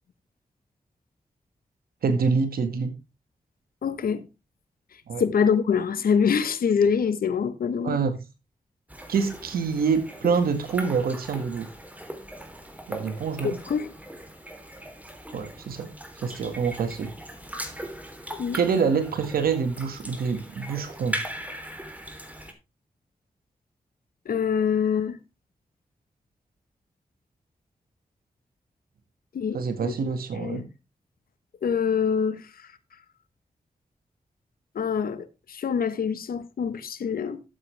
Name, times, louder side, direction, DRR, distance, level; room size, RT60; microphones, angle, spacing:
voice 1, 2.0-2.9 5.1-5.2 7.8-8.2 9.1-11.7 12.9-13.6 15.3-15.9 16.2-17.1 18.5-21.2 29.5-30.6, right 5 dB, 85° right, 1.9 m, -26 dB
voice 2, 3.8-4.3 5.2-8.0 13.7-13.9 18.4-18.6 24.2-25.2 29.3-29.9 30.3-30.7 31.6-32.7 34.7-37.4, left 6 dB, 80° left, 1.1 m, -25 dB
sound 1, 8.9-22.5, right 1 dB, 10° right, 3.3 m, -39 dB
12.0 x 8.3 x 3.4 m
cardioid pair, 40°, 15 cm